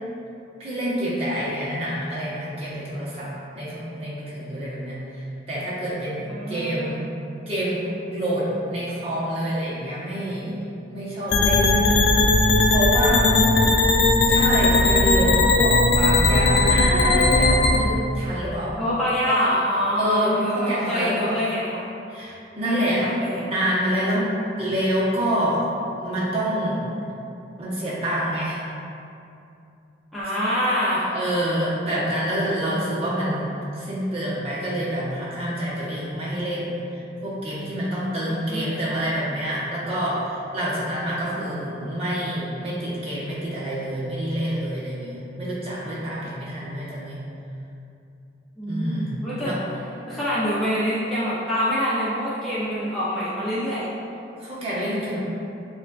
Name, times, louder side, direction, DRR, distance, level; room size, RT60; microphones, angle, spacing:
voice 1, 0.6-7.1 7.5-7.8 8.1-10.5 10.9-11.9 12.6-13.3 14.3-18.8 19.3-19.4 19.9-21.4 22.1-23.1 23.5-25.6 26.0-26.8 27.6-28.6 30.7-30.8 31.1-47.2 48.7-49.6 54.4-55.2, equal, 30° right, -8 dB, 0.9 m, -27 dB
voice 2, 6.3-6.9 13.1-13.8 18.8-21.9 22.6-23.5 30.1-31.1 38.5-38.7 48.6-49.5 50.1-53.9, equal, ahead, -12 dB, 0.5 m, -25 dB
sound 1, 11.3-17.8, left 2 dB, 65° left, 0.4 m, -18 dB
7.0 x 2.4 x 2.3 m, 2.7 s
head